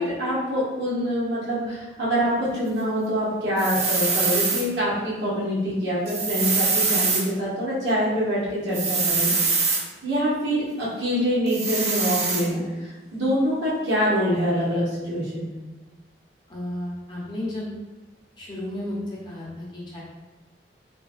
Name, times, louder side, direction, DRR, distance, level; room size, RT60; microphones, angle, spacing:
voice 1, 0.0-9.4 10.0-15.5, equal, 65° right, -7 dB, 1.0 m, -25 dB
sound 1, 3.6-4.6 6.1-7.2 8.7-9.8 11.5-12.4, right 4 dB, 35° right, 0.3 m, -23 dB
voice 2, 16.5-17.7 18.4-20.0, left 1 dB, 25° left, -6 dB, 0.7 m, -33 dB
3.1 x 2.3 x 2.4 m, 1.2 s
head